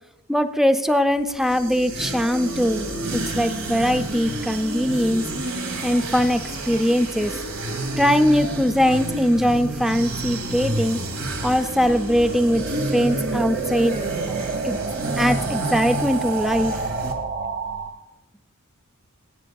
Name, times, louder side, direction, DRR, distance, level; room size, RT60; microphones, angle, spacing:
voice 1, 0.3-5.2 5.8-7.3 8.0-11.0 11.4-12.6 12.9-13.9 14.6-14.8 15.2-16.8, equal, ahead, 8 dB, 0.4 m, -21 dB
sound 1, 1.2-17.1, right 1 dB, 70° right, 1.3 m, -30 dB
sound 2, 8.7-17.9, right 4 dB, 45° right, 1.1 m, -31 dB
24.5 x 8.3 x 2.3 m, 1.1 s
head